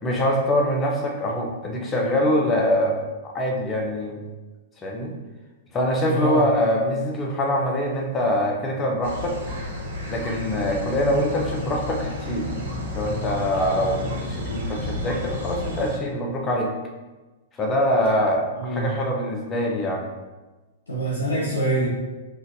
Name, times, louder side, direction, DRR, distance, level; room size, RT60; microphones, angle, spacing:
voice 1, 0.0-3.0 3.2-4.2 4.8-5.1 5.7-9.4 10.1-12.5 12.9-16.7 17.6-20.1, left 1 dB, 20° left, 0 dB, 0.7 m, -24 dB
voice 2, 6.1-6.4 18.5-18.9 20.9-21.9, right 2 dB, 80° left, -7 dB, 0.9 m, -24 dB
sound 1, 9.0-16.0, left 1 dB, 75° right, 1.5 m, -31 dB
4.0 x 2.5 x 2.7 m, 1.2 s
hypercardioid pair, 110°, 0 cm